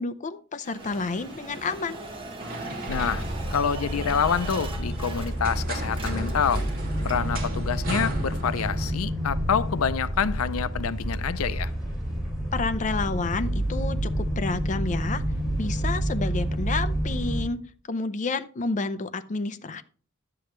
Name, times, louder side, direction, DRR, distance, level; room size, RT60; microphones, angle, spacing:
voice 1, 0.0-2.0 12.5-15.2 15.6-17.6 17.9-19.8, left 3 dB, 35° left, 0.5 m, -30 dB
sound 1, 0.6-5.6 5.9-7.4, right 3 dB, 25° right, 1.3 m, -41 dB
sound 2, 0.8-8.9, right 1 dB, 45° right, 2.6 m, -38 dB
voice 2, 2.9-3.2 3.5-6.6 7.0-11.7, left 7 dB, 90° left, 0.5 m, -27 dB
sound 3, 2.9-17.4, equal, ahead, 4.2 m, -29 dB
11.5 x 7.8 x 3.1 m
head